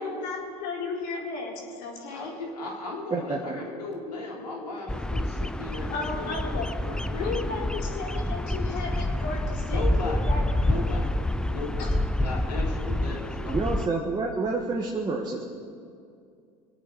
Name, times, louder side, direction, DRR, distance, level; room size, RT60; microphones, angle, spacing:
voice 1, 0.0-2.4 5.9-6.7 7.2-10.4 11.8-11.9, left 4 dB, 60° left, -1 dB, 4.3 m, -34 dB
voice 2, 2.1-5.9 6.2-6.3 6.9-7.6 9.7-10.3 10.6-11.2 11.5-11.9 12.2-13.8, left 2 dB, 85° left, -2 dB, 3.5 m, -36 dB
voice 3, 3.1-3.6 13.4-15.4, right 3 dB, 20° right, -1 dB, 1.8 m, -28 dB
Bird vocalization bird call bird song, 4.9-13.9, left 1 dB, 5° left, 0.5 m, -28 dB
24.0 x 8.8 x 6.5 m, 2.4 s
hypercardioid pair, 80°, 20 cm